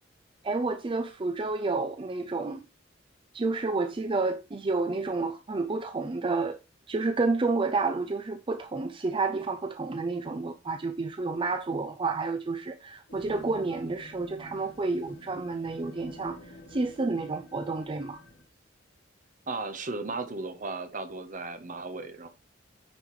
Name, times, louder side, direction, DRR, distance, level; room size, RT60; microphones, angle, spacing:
voice 1, 0.4-2.6 3.3-6.6 6.9-18.2, right 3 dB, 25° right, 0.5 m, -30 dB
sound 1, 13.1-18.4, left 1 dB, 85° left, 2.6 m, -49 dB
voice 2, 19.5-22.3, right 3 dB, 45° right, 1.1 m, -35 dB
9.7 x 5.1 x 3.1 m
head